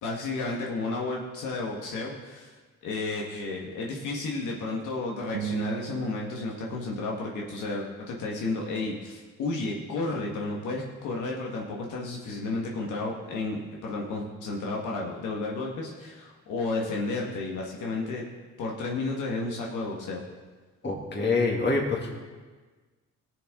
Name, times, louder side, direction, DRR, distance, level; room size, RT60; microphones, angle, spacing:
voice 1, 0.0-2.5 2.8-18.2 18.6-20.2, left 3 dB, 80° left, -2 dB, 1.7 m, -32 dB
sound 1, 5.3-8.0, right 8 dB, 80° right, 0.9 m, -38 dB
voice 2, 20.8-22.1, left 3 dB, 35° left, -1 dB, 2.5 m, -26 dB
19.0 x 7.0 x 3.8 m, 1.4 s
cardioid pair, 90°, 30 cm